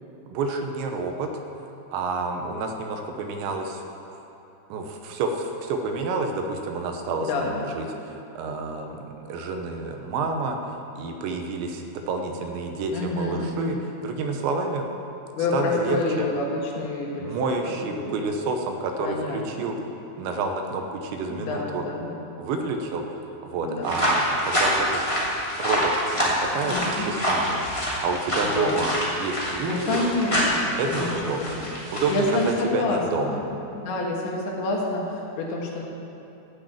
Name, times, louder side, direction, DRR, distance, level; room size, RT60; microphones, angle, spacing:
voice 1, 0.3-1.3 1.9-3.8 4.1-4.2 4.7-10.6 11.0-13.8 14.0-14.9 15.5-16.3 17.2-19.8 20.2-21.8 22.4-23.2 23.4-25.0 25.6-30.1 30.8-31.6 31.9-32.4 32.7-33.4, right 3 dB, 85° right, 4 dB, 3.2 m, -29 dB
voice 2, 7.2-7.7 12.9-13.8 15.3-18.2 19.0-19.7 21.3-22.1 23.6-24.0 26.6-27.0 28.4-28.9 29.6-31.1 31.4-31.7 32.1-33.5 33.7-35.8, left 3 dB, 75° left, -2 dB, 3.9 m, -28 dB
sound 1, 23.8-32.5, equal, 10° left, 1.7 m, -26 dB
14.5 x 6.3 x 8.7 m, 2.9 s
omnidirectional pair, 5.2 m